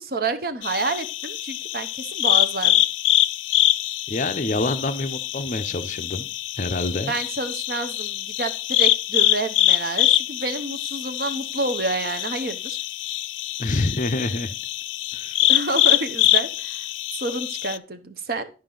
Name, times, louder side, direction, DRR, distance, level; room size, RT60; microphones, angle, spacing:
voice 1, 0.0-2.8 7.1-12.8 15.5-16.8 17.1-18.5, right 3 dB, 50° right, 9 dB, 0.8 m, -29 dB
sound 1, 0.6-17.8, left 14 dB, 90° left, 0.3 m, -24 dB
voice 2, 4.1-6.3 6.6-7.1 13.6-14.5 15.1-15.4, left 2 dB, 40° left, 9 dB, 0.6 m, -26 dB
11.0 x 5.4 x 3.8 m, 0.35 s
head